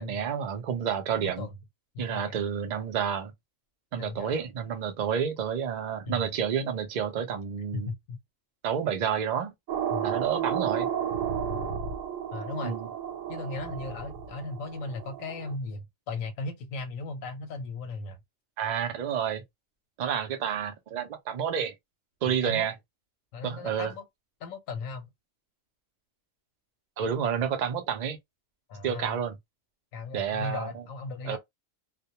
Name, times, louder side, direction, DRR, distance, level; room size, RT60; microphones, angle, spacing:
voice 1, 0.0-1.5 2.0-3.3 3.9-7.9 8.6-9.5 10.0-10.9 12.6-12.9 18.6-19.4 20.0-21.7 22.2-22.7 23.4-23.9 27.0-28.2 28.8-29.4 30.1-30.7 31.2-31.4, right 8 dB, 65° right, 0.4 m, -29 dB
voice 2, 1.2-1.6 1.9-2.4 4.0-4.4 6.1-6.3 7.7-8.2 9.9-10.1 12.3-12.7 13.3-18.2 22.2-22.7 23.3-24.0 24.4-25.1 28.7-29.1 29.9-31.4, left 3 dB, 90° left, 1.0 m, -37 dB
sound 1, 9.7-15.5, right 8 dB, 85° right, 1.1 m, -32 dB
2.2 x 2.1 x 2.8 m
omnidirectional pair, 1.4 m